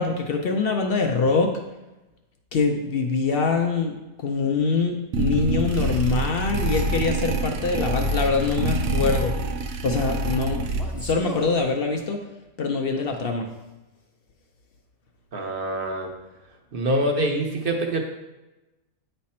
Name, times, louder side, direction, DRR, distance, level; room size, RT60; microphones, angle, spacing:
voice 1, 0.0-1.5 2.5-9.4 9.8-12.2 12.6-13.5, left 4 dB, 70° left, 3 dB, 0.5 m, -24 dB
sound 1, 5.1-11.2, right 2 dB, 75° right, 1.1 m, -26 dB
Male speech man speaking, 5.7-6.1 6.7-7.0 7.7-8.1 9.1-9.4 10.7-11.6, equal, ahead, 0.4 m, -37 dB
voice 2, 15.3-16.1 16.7-18.0, right 1 dB, 45° right, 2 dB, 0.9 m, -25 dB
9.4 x 3.3 x 4.2 m, 1.0 s
omnidirectional pair, 1.7 m